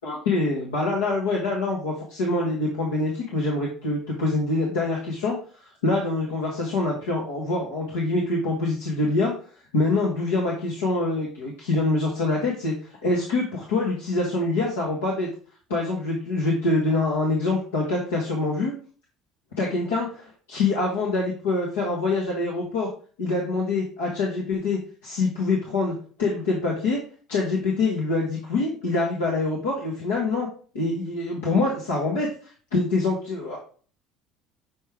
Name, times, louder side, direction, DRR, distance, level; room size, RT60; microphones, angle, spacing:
voice 1, 0.0-5.4 5.8-9.3 9.7-15.3 15.7-18.7 19.6-22.9 23.2-25.9 26.2-27.0 27.3-30.5 30.7-33.6, left 2 dB, 85° left, -3 dB, 1.4 m, -25 dB
6.4 x 4.5 x 3.4 m, 0.42 s
hypercardioid pair, 70°, 0 cm